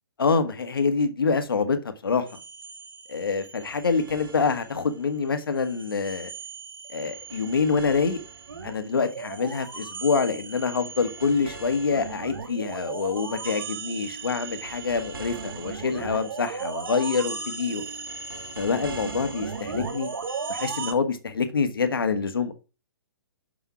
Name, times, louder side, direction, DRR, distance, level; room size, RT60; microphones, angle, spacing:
voice 1, 0.2-1.8 2.0-2.2 3.1-6.3 6.9-8.2 8.6-17.8 18.6-20.1 20.5-22.5, left 5 dB, 70° left, 1.7 m, -26 dB
sound 1, 2.3-5.0 5.3-20.9, right 5 dB, 65° right, 2.5 m, -37 dB
6.9 x 6.5 x 5.8 m
figure-of-eight pair, 125°, 12 cm